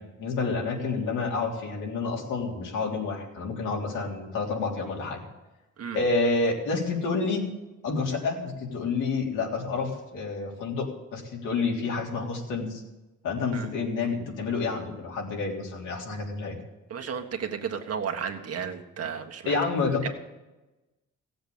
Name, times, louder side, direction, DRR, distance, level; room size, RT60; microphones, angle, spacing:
voice 1, 0.0-5.2 5.9-7.4 7.8-12.8 13.2-16.6 19.5-20.1, left 4 dB, 85° left, -1 dB, 3.5 m, -29 dB
voice 2, 16.9-19.6 20.0-20.1, right 7 dB, 55° right, 4 dB, 1.6 m, -33 dB
15.5 x 7.9 x 8.6 m, 1.1 s
cardioid pair, 90°, 30 cm